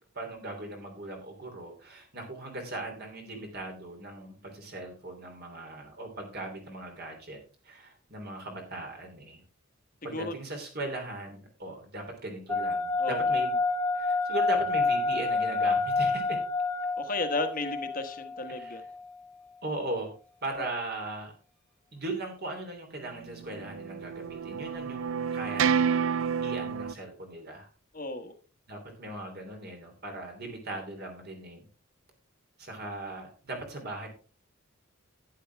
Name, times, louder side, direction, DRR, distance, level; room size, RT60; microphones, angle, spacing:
voice 1, 0.1-7.4 7.6-9.4 10.0-13.6 13.9-16.4 18.5-18.8 19.6-20.1 20.4-21.3 21.9-25.9 26.4-27.7 28.7-31.6 32.6-34.1, right 2 dB, 50° right, 2 dB, 3.2 m, -38 dB
sound 1, 12.5-19.1, left 3 dB, 5° left, 1.0 m, -28 dB
voice 2, 13.0-13.3 17.0-18.8 27.9-28.3, left 2 dB, 40° left, 8 dB, 1.3 m, -33 dB
sound 2, 23.3-26.9, right 7 dB, 70° right, 0.4 m, -29 dB
11.5 x 9.5 x 3.4 m, 0.36 s
head